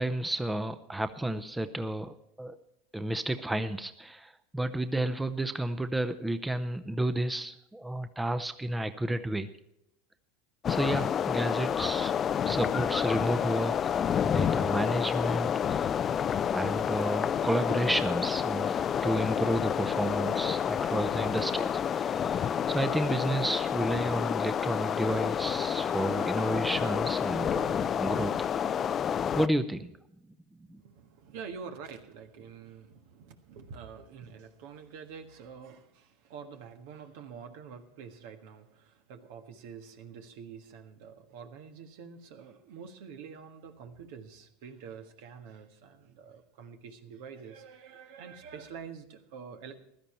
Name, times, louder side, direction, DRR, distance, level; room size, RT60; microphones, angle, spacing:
voice 1, 0.0-2.6 2.9-9.5 10.7-12.1 12.4-15.9 16.5-28.3 29.3-29.9 30.7-30.8, right 1 dB, 10° right, 10 dB, 0.7 m, -31 dB
sound 1, 10.6-29.5, left 8 dB, 35° left, 0.5 m, -29 dB
voice 2, 30.7-49.8, right 6 dB, 70° right, 6 dB, 1.5 m, -47 dB
15.5 x 12.0 x 4.4 m, 0.79 s
hypercardioid pair, 100°, 0 cm